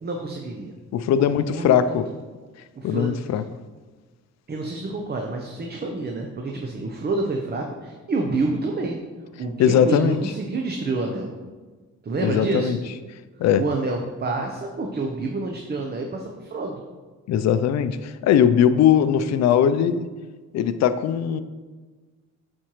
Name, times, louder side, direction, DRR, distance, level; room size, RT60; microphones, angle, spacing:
voice 1, 0.0-0.7 1.2-2.0 2.7-3.4 4.5-9.0 9.4-11.3 12.0-12.7 13.6-16.8, right 3 dB, 35° right, 0.7 m, -28 dB
voice 2, 0.9-2.1 2.8-3.4 9.6-10.2 12.2-12.8 13.4-13.6 17.3-20.1 20.5-21.4, left 9 dB, 60° left, 0.5 m, -20 dB
8.6 x 4.4 x 3.0 m
cardioid pair, 90°, 30 cm